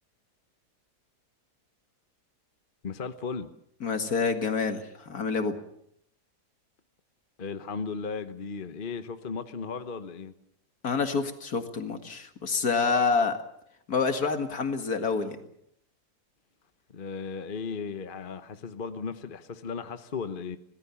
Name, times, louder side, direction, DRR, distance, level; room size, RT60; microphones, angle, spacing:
voice 1, 2.8-3.5 7.4-10.3 16.9-20.6, left 5 dB, 35° left, 9 dB, 1.1 m, -36 dB
voice 2, 3.8-5.6 10.8-13.4 13.9-15.4, left 4 dB, 60° left, 7 dB, 2.4 m, -27 dB
26.0 x 18.0 x 7.2 m, 0.72 s
omnidirectional pair, 1.8 m